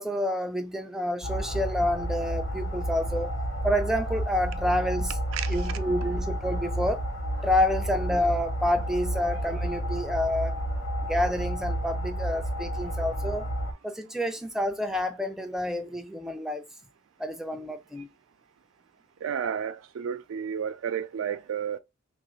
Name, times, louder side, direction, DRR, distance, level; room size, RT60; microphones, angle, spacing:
voice 1, 0.0-3.3 3.6-5.2 5.5-7.0 7.4-10.6 11.1-13.5 13.8-16.6 17.2-18.1, left 1 dB, ahead, 0.3 m, -28 dB
sound 1, 1.2-13.7, right 1 dB, 75° left, 0.8 m, -31 dB
voice 2, 5.3-6.1 19.2-21.8, right 8 dB, 80° right, 0.3 m, -32 dB
3.0 x 2.5 x 3.1 m
head